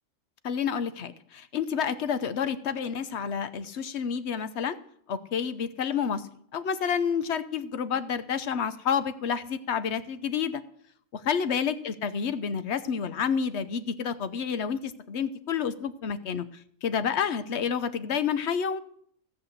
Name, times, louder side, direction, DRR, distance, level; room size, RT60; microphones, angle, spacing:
voice 1, 0.4-4.8 5.1-6.3 6.5-10.6 11.1-16.5 16.8-18.8, left 7 dB, 60° left, 11 dB, 1.1 m, -29 dB
16.0 x 5.7 x 8.0 m, 0.63 s
omnidirectional pair, 1.3 m